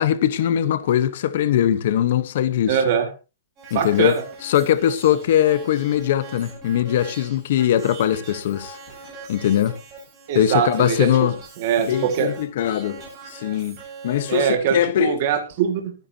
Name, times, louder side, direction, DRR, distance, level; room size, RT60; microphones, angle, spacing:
voice 1, 0.0-2.8 3.7-4.1 4.4-8.8 9.3-9.8 10.3-11.3 11.8-13.0 13.3-13.8 14.0-15.1, left 10 dB, 50° left, 1.2 m, -21 dB
voice 2, 2.7-3.1 3.7-4.2 10.3-11.3 11.6-12.3 14.3-15.9, right 8 dB, 40° right, 2.1 m, -22 dB
sound 1, 3.6-14.5, right 4 dB, 25° right, 7.6 m, -41 dB
23.0 x 9.7 x 2.9 m
hypercardioid pair, 175°, 0 cm